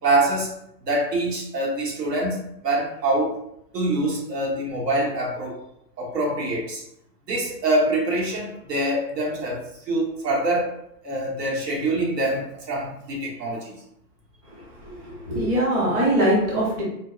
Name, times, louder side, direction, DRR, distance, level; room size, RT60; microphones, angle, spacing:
voice 1, 0.0-0.5 0.8-3.4 3.7-5.6 6.0-6.8 7.3-10.7 11.0-13.8, right 2 dB, 80° right, -2 dB, 1.3 m, -25 dB
voice 2, 14.5-16.8, right 1 dB, 20° right, -6 dB, 0.7 m, -23 dB
4.4 x 2.1 x 2.3 m, 0.78 s
hypercardioid pair, 150°, 49 cm